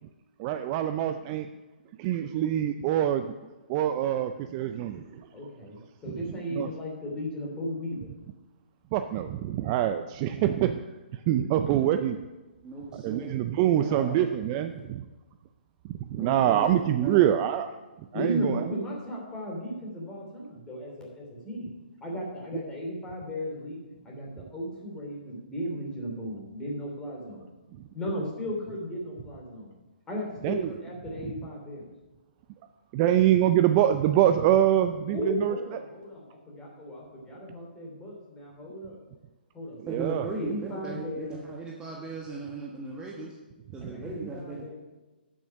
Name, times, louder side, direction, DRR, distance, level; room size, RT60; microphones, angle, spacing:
voice 1, 0.4-1.5 2.0-3.3 3.7-5.3 6.1-6.2 6.6-6.7 8.9-10.8 11.1-12.2 12.9-15.0 15.9-17.7 18.0-18.7 30.4-30.7 31.2-31.3 32.9-35.6 39.8-40.3 44.2-44.3, right 11 dB, 30° right, 8 dB, 0.4 m, -25 dB
voice 2, 5.3-8.1 10.4-10.6 11.3-11.4 11.7-11.8 18.1-21.7 22.0-23.8 24.0-27.5 27.9-29.7 30.1-31.9 35.1-39.0 39.5-41.3 43.8-44.7, equal, 15° left, -2 dB, 3.1 m, -35 dB
voice 3, 12.6-13.3 13.8-14.2 16.2-17.3 39.9-43.4 43.7-44.7, right 3 dB, 15° right, -2 dB, 1.2 m, -37 dB
10.5 x 6.4 x 5.8 m, 1.1 s
hypercardioid pair, 145°, 6 cm